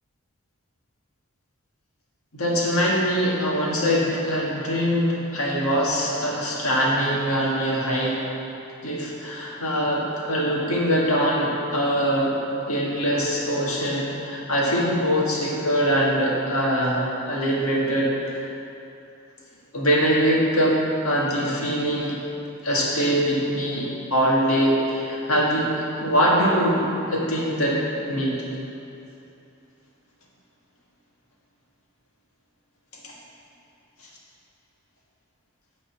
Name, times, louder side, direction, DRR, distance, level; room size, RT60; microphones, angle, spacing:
voice 1, 2.3-8.2 8.8-12.4 12.7-18.5 19.7-20.8 21.0-22.2 22.6-26.8 27.1-27.8 28.1-28.4, equal, 75° left, -4 dB, 1.8 m, -23 dB
9.4 x 4.2 x 7.2 m, 2.8 s
head